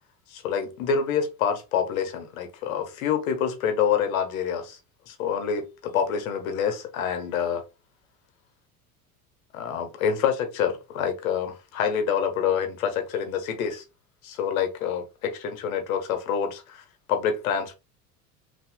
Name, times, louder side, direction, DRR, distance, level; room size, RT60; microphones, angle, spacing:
voice 1, 0.3-4.8 5.1-7.6 9.5-13.8 14.2-17.7, left 7 dB, 65° left, 1.2 m, -27 dB
5.7 x 3.0 x 2.3 m
figure-of-eight pair, 75°, 45 cm